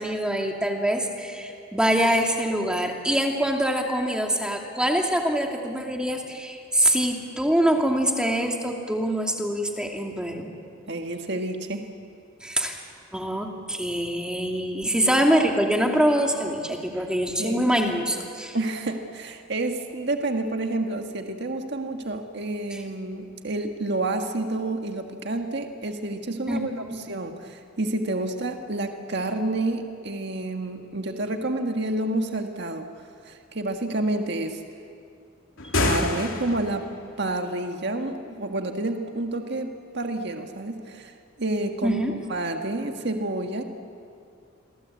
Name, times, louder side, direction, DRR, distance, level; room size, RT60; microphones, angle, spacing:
voice 1, 0.0-10.5 12.4-12.8 13.1-18.6 22.7-22.8 26.5-26.6 26.9-27.0 41.8-42.1, equal, 5° right, 1 dB, 2.5 m, -24 dB
voice 2, 10.9-11.9 15.0-15.2 16.9-17.0 17.4-17.7 18.5-32.9 33.2-34.6 35.8-36.9 37.2-42.0 42.3-43.6, right 2 dB, 55° right, 4 dB, 1.7 m, -29 dB
sound 1, 35.6-36.9, left 2 dB, 85° left, 2.9 m, -26 dB
29.0 x 22.5 x 8.4 m, 2.4 s
head